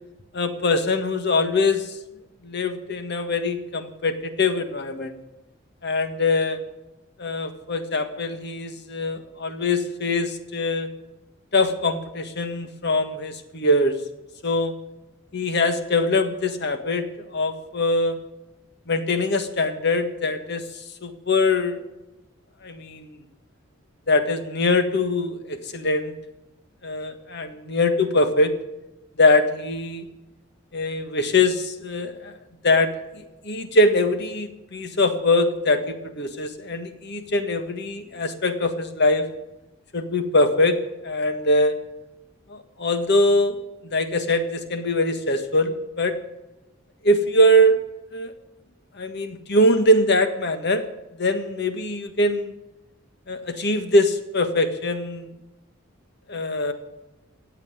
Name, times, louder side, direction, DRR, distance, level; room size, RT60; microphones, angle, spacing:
voice 1, 0.3-2.0 2.4-5.1 5.8-6.6 7.2-10.9 11.5-14.0 14.4-14.7 15.3-18.2 18.9-20.6 21.0-21.8 22.6-23.2 24.1-26.1 26.8-28.5 29.2-30.0 30.7-32.3 32.6-32.9 33.4-39.3 39.9-40.8 41.0-41.7 42.5-43.6 43.8-46.2 47.0-47.8 48.1-48.3 49.0-50.8 51.2-52.6 53.3-55.3 56.3-56.7, left 1 dB, 55° left, 9 dB, 1.6 m, -22 dB
15.0 x 8.4 x 9.7 m, 0.98 s
head